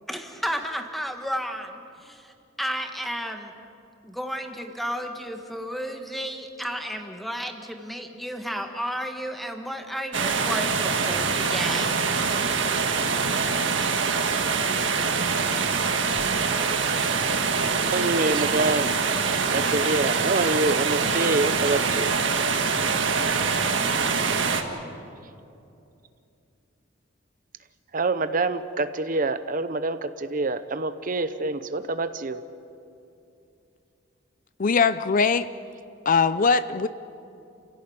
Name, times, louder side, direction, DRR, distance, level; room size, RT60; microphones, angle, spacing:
voice 1, 0.1-3.5 4.0-12.1, equal, ahead, 4 dB, 1.7 m, -32 dB
sound 1, 10.1-24.6, right 5 dB, 70° right, 1.8 m, -24 dB
voice 2, 17.2-19.0 19.5-22.2 27.9-32.4, right 3 dB, 45° right, 11 dB, 0.8 m, -26 dB
voice 3, 34.6-35.5 36.1-36.9, left 5 dB, 45° left, 13 dB, 0.5 m, -21 dB
29.0 x 16.5 x 8.8 m, 2.7 s
head